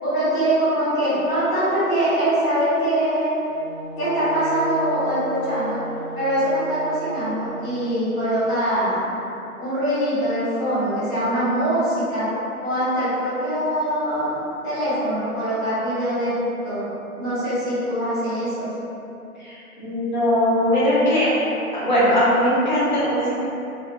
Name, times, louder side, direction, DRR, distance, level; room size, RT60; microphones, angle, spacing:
voice 1, 0.0-3.5 4.0-5.8 6.1-9.1 9.6-12.3 12.6-16.3 16.6-16.8 17.2-18.7, right 1 dB, 5° left, -17 dB, 1.1 m, -23 dB
Wind instrument woodwind instrument, 3.4-7.9, right 2 dB, 75° right, 0.8 m, -35 dB
voice 2, 19.4-21.3 21.7-23.3, equal, 30° left, -10 dB, 0.7 m, -20 dB
2.7 x 2.3 x 2.7 m, 2.8 s
figure-of-eight pair, 150°, 44 cm